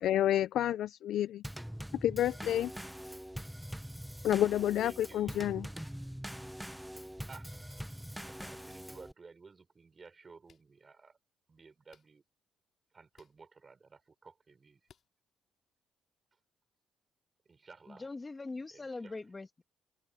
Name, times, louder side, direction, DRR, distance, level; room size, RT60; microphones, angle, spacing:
voice 1, 0.0-1.4 2.0-2.7 4.2-5.7, left 12 dB, 80° left, 0.4 m, -29 dB
Drum kit / Snare drum / Bass drum, 1.4-9.1, equal, ahead, 0.8 m, -43 dB
voice 2, 4.8-5.9 7.3-7.5 7.9-11.2 11.5-12.2 12.9-14.8 17.5-18.1 18.7-19.2, right 4 dB, 35° right, 5.3 m, -55 dB
sound 1, 7.3-7.4 8.7-8.8 10.4-10.6 11.9-12.1 13.1-13.4 14.8-15.1, left 8 dB, 55° left, 3.5 m, -64 dB
voice 3, 17.9-19.6, left 3 dB, 25° left, 2.2 m, -42 dB
cardioid pair, 90°, 0 cm